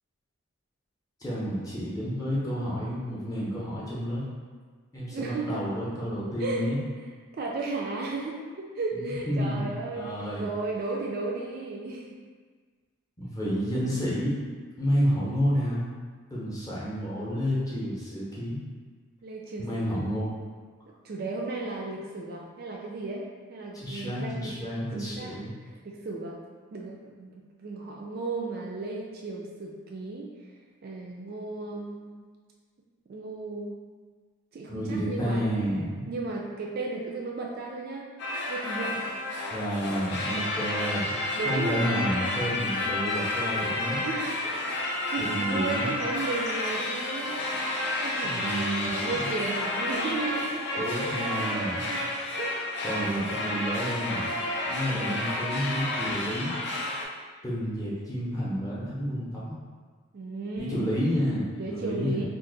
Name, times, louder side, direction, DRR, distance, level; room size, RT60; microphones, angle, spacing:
voice 1, 1.2-4.2 4.9-6.8 8.9-10.5 13.2-14.3 14.8-15.9 16.3-18.6 19.6-20.3 23.7-25.5 34.7-35.9 39.5-41.1 41.4-44.0 45.2-45.9 48.2-49.2 50.8-51.9 52.8-54.3 54.6-56.5 57.4-59.5 60.6-61.4 61.7-62.2, equal, 15° left, -7 dB, 0.7 m, -30 dB
voice 2, 5.1-5.6 6.4-6.6 7.3-12.2 19.2-20.1 21.0-26.4 26.7-27.3 27.6-30.3 30.8-32.1 33.1-33.8 34.5-35.5 36.1-38.1 38.5-39.1 41.3-42.0 44.0-44.7 45.1-47.4 47.9-52.1 52.4-53.4 54.9-55.2 60.1-60.9 61.6-62.2, right 3 dB, 45° right, -1 dB, 0.3 m, -35 dB
sound 1, 38.2-57.0, left 1 dB, 55° left, 0.5 m, -30 dB
2.6 x 2.4 x 3.8 m, 1.5 s
head